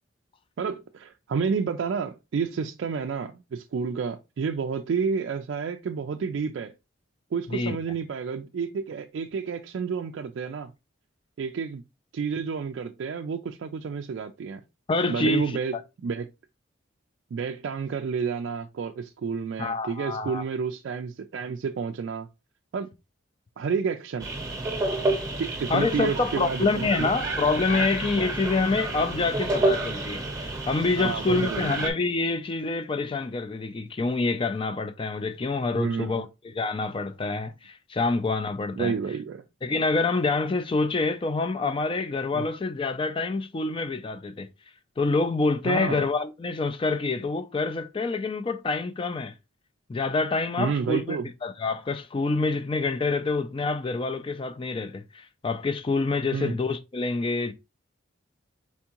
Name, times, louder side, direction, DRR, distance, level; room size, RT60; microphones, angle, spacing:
voice 1, 0.6-6.7 7.3-10.7 11.4-11.8 12.1-14.6 15.1-15.8 16.0-16.3 17.3-22.3 22.7-22.9 23.6-24.3 25.4-27.1 31.0-31.9 35.7-36.3 38.8-39.4 42.3-42.5 45.6-46.1 50.6-51.3 56.3-56.6, right 5 dB, 60° right, 0.3 m, -30 dB
voice 2, 14.9-15.8 19.6-20.4 25.7-36.3 36.5-38.9 39.6-44.5 45.0-49.3 49.9-57.5, left 3 dB, 25° left, 0.3 m, -27 dB
sound 1, 24.2-31.9, right 2 dB, 15° right, 0.8 m, -29 dB
4.4 x 3.5 x 2.9 m
head